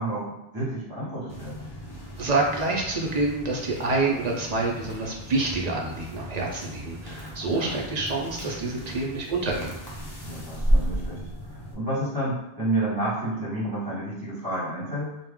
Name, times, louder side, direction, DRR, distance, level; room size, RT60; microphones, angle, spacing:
voice 1, 0.0-1.7 7.4-7.8 10.2-11.2 11.5-15.1, right 1 dB, 20° right, -9 dB, 0.9 m, -30 dB
sound 1, 1.3-11.7, equal, 35° left, 0.4 m, -33 dB
voice 2, 2.2-9.7, right 3 dB, 55° right, -1 dB, 0.5 m, -27 dB
2.3 x 2.1 x 3.5 m, 0.91 s
omnidirectional pair, 1.1 m